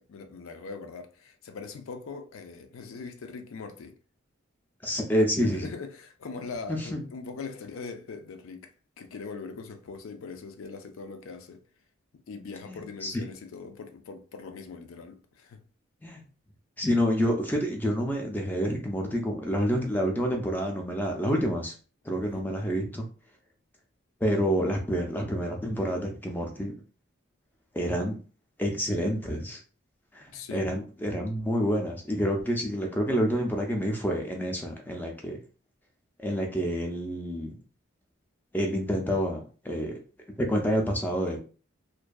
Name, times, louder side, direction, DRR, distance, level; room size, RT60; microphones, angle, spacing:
voice 1, 0.1-4.0 5.4-8.7 9.0-11.6 12.3-15.6 22.2-22.5 30.3-30.7, left 4 dB, 80° left, 0.4 m, -41 dB
voice 2, 4.8-5.7 6.7-7.0 12.7-13.2 16.0-16.2 16.8-21.7 22.1-23.1 24.2-26.7 27.7-28.2 28.6-29.6 30.1-35.4 36.2-37.5 38.5-39.9 40.4-41.4, equal, 10° left, 0.3 m, -28 dB
2.5 x 2.2 x 2.3 m
head